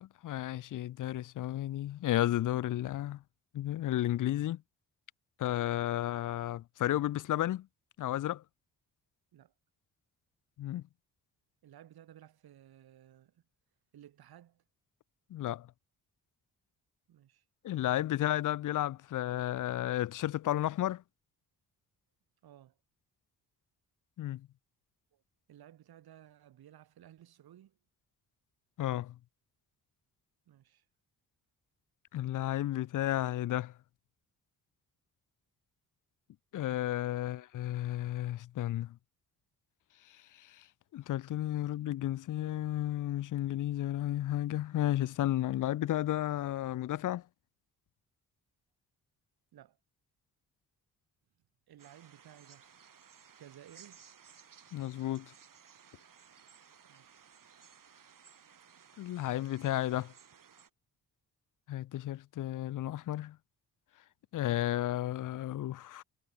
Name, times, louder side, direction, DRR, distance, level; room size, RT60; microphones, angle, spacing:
voice 1, 0.0-3.2 3.5-4.6 5.4-7.7 8.0-8.4 10.6-10.8 15.3-15.7 17.6-21.0 24.2-24.5 28.8-29.2 32.1-33.7 36.5-39.0 40.4-40.6 40.9-47.2 54.7-55.3 59.0-60.1 61.7-63.4 64.3-66.0, left 13 dB, 55° left, 0.5 m, -33 dB
voice 2, 11.6-13.4 13.9-14.6 17.1-17.5 22.4-22.8 25.1-25.2 25.5-27.8 30.4-30.9 49.5-49.8 51.7-52.7 53.4-54.1 56.8-57.2, right 11 dB, 75° right, 3.4 m, -57 dB
sound 1, 51.8-60.7, right 7 dB, 60° right, 7.6 m, -59 dB
supercardioid pair, 55°, 37 cm